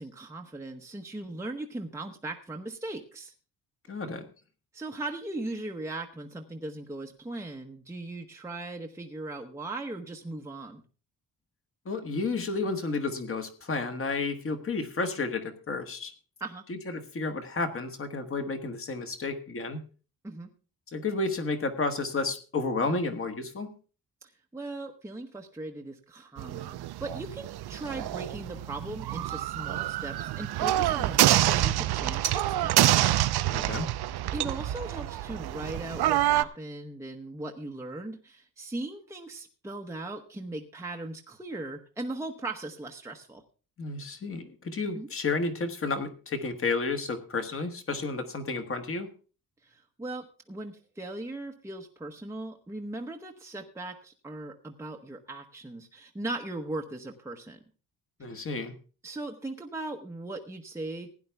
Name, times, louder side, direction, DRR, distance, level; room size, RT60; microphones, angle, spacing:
voice 1, 0.0-3.3 4.7-10.8 16.4-16.6 20.2-20.5 24.5-33.5 34.3-43.4 44.9-45.1 49.6-57.6 58.3-58.5 59.0-61.1, right 2 dB, 5° right, 2 dB, 0.9 m, -39 dB
voice 2, 3.9-4.3 11.8-16.1 16.7-19.8 20.9-23.7 33.5-33.9 43.8-49.1 58.2-58.7, left 3 dB, 35° left, 8 dB, 1.4 m, -31 dB
sound 1, 26.4-36.4, right 13 dB, 80° right, 0.7 m, -27 dB
16.5 x 10.0 x 3.4 m, 0.36 s
wide cardioid pair, 175°, 38 cm